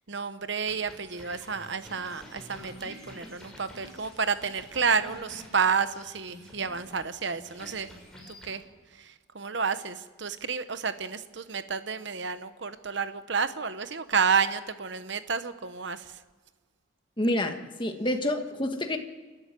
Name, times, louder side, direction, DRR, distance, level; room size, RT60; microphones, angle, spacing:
voice 1, 0.1-7.9 8.3-8.6 9.0-16.2, right 5 dB, 60° right, 11 dB, 1.0 m, -30 dB
sound 1, 0.6-8.6, equal, 5° left, 6.3 m, -48 dB
voice 2, 17.2-19.0, left 1 dB, 25° left, 5 dB, 1.6 m, -28 dB
29.5 x 13.0 x 9.1 m, 1.3 s
head